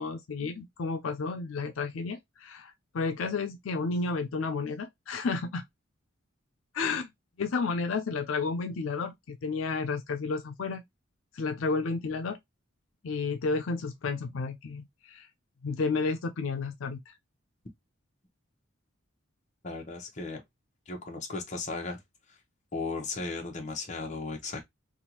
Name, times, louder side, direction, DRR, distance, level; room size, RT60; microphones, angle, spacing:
voice 1, 0.0-5.6 6.7-7.1 7.4-10.8 11.3-12.4 13.0-15.3 15.6-17.1, left 4 dB, 80° left, 0.5 m, -32 dB
voice 2, 19.6-20.4 20.9-22.0 22.7-24.6, left 3 dB, 35° left, 1.0 m, -36 dB
3.5 x 2.4 x 2.9 m
head